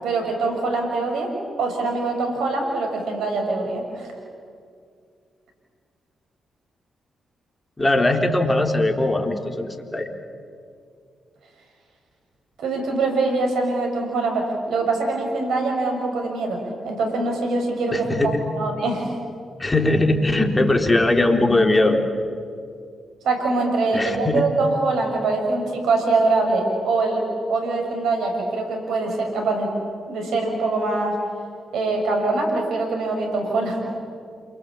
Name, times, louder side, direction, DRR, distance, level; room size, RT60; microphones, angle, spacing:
voice 1, 0.0-1.3 1.6-4.1 12.6-19.1 23.2-27.2 27.5-29.7 30.1-31.2 31.7-33.8, right 3 dB, 75° right, 2 dB, 6.3 m, -23 dB
voice 2, 7.8-10.1 17.9-18.4 19.6-22.0 23.9-24.4, left 2 dB, 25° left, 4 dB, 4.1 m, -20 dB
28.5 x 24.5 x 8.6 m, 2.3 s
hypercardioid pair, 40°, 0 cm